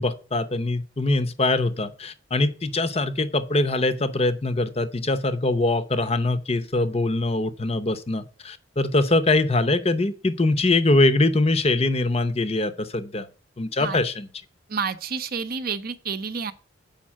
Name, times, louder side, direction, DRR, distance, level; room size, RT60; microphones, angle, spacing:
voice 1, 0.0-13.3 13.6-14.3, left 2 dB, 30° left, 0.7 m, -23 dB
voice 2, 14.7-16.5, right 5 dB, 45° right, 0.7 m, -29 dB
7.2 x 5.4 x 7.4 m
head